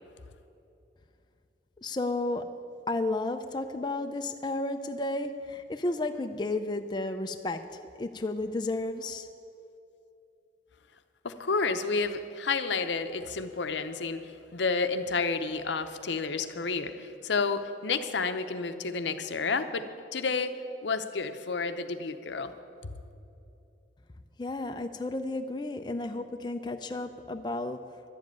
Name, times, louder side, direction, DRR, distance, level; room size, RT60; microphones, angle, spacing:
voice 1, 1.8-2.5 2.9-7.6 8.0-9.2 24.4-27.8, left 2 dB, 25° left, 6 dB, 0.4 m, -32 dB
voice 2, 11.2-14.2 14.5-19.8 20.1-20.5 20.8-22.5, left 4 dB, 85° left, 10 dB, 0.7 m, -30 dB
11.5 x 7.6 x 9.2 m, 2.7 s
head